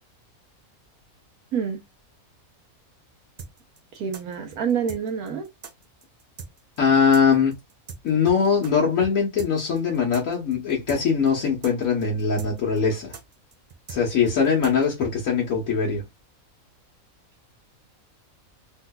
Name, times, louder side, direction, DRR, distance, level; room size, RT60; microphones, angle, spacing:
voice 1, 1.5-1.8 3.9-5.5, right 7 dB, 80° right, 1.2 m, -27 dB
sound 1, 3.4-8.7 9.0-9.1 9.4-15.1, right 5 dB, 55° right, 0.4 m, -40 dB
voice 2, 6.8-7.5 8.0-13.1 13.9-16.0, left 6 dB, 70° left, 1.3 m, -21 dB
3.8 x 2.8 x 2.2 m
omnidirectional pair, 1.5 m